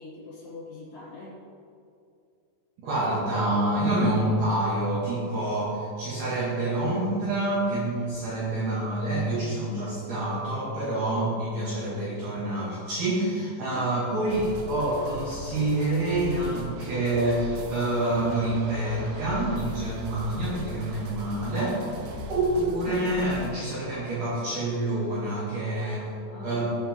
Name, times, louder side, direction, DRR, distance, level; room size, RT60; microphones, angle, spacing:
voice 1, 0.0-1.4 13.6-13.9 22.1-22.3 26.1-26.7, left 2 dB, 60° left, -12 dB, 5.6 m, -43 dB
voice 2, 2.8-21.8 22.3-26.1 26.4-26.7, right 1 dB, 60° right, -9 dB, 3.9 m, -27 dB
sound 1, 14.3-23.5, left 1 dB, 75° right, 3.9 m, -39 dB
19.5 x 8.6 x 3.8 m, 2.4 s
omnidirectional pair, 5.7 m